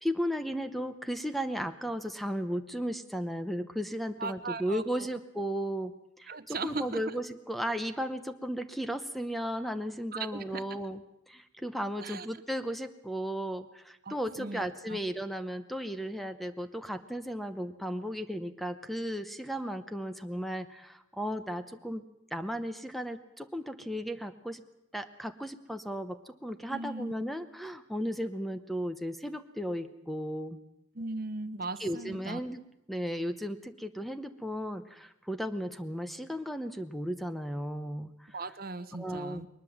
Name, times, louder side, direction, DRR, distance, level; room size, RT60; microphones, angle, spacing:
voice 1, 0.0-11.0 11.3-22.0 22.3-24.6 24.9-30.6 31.8-32.6 32.9-38.4 39.0-39.4, equal, ahead, 9 dB, 0.8 m, -35 dB
voice 2, 4.2-5.1 6.3-7.1 10.1-10.6 12.0-12.3 14.0-14.6 14.9-15.0 26.7-27.1 30.9-32.4 38.3-39.5, right 3 dB, 45° right, 13 dB, 0.8 m, -38 dB
21.5 x 20.0 x 7.3 m, 0.81 s
head